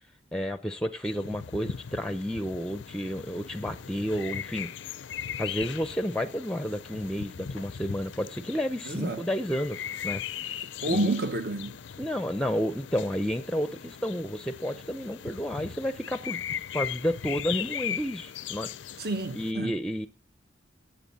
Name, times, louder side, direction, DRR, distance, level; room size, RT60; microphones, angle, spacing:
voice 1, 0.3-4.7 5.4-10.2 10.9-11.1 12.0-16.4 16.7-18.7 19.3-20.1, equal, 5° left, 0.6 m, -31 dB
sound 1, 1.0-19.5, left 9 dB, 80° left, 0.5 m, -39 dB
voice 2, 8.9-9.2 10.8-11.8 19.0-19.8, right 2 dB, 55° right, 1.0 m, -29 dB
17.5 x 8.0 x 4.1 m
head